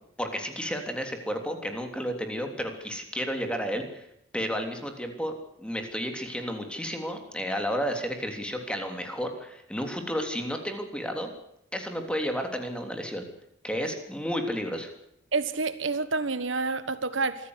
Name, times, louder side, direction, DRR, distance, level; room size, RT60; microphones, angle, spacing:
voice 1, 0.2-4.1 4.3-5.3 5.6-11.3 11.7-13.2 13.6-14.9, equal, 5° left, 3.3 m, -32 dB
voice 2, 15.3-17.5, right 3 dB, 75° right, 1.3 m, -28 dB
25.5 x 15.0 x 8.1 m
head